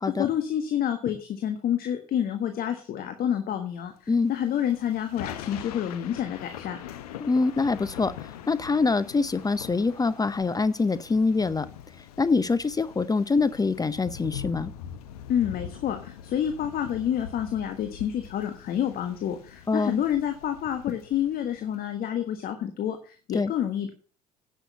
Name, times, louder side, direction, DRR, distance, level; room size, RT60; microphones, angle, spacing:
voice 1, 0.2-6.8 15.3-23.9, left 10 dB, 50° left, 7 dB, 1.5 m, -28 dB
Thunder / Rain, 4.3-21.8, left 10 dB, 80° left, 1.1 m, -43 dB
voice 2, 7.2-11.7 12.2-14.7 19.7-20.0 23.3-23.5, left 4 dB, 20° left, 16 dB, 0.7 m, -25 dB
10.0 x 6.6 x 6.7 m, 0.39 s
hypercardioid pair, 60°, 19 cm